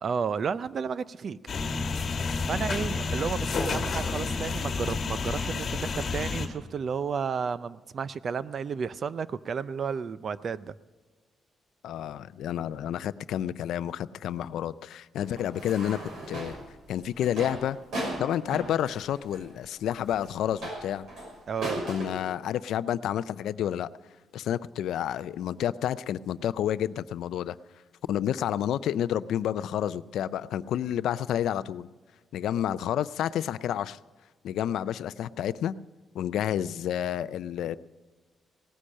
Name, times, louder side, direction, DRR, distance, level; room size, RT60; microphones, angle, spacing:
voice 1, 0.0-1.4 2.5-10.7 21.5-21.8, right 6 dB, 35° right, 16 dB, 0.4 m, -32 dB
sound 1, 1.5-6.5, left 4 dB, 40° left, 1.6 m, -30 dB
voice 2, 11.8-16.0 16.3-16.6 16.9-17.8 18.2-21.1 21.8-23.9 24.3-27.6 28.1-31.9 32.3-34.0 34.4-35.8 36.1-37.8, left 10 dB, 80° left, 16 dB, 0.4 m, -30 dB
sound 2, 15.2-22.1, right 1 dB, 60° right, 5.7 m, -37 dB
18.0 x 10.0 x 6.4 m, 1.4 s
cardioid pair, 180°, 0 cm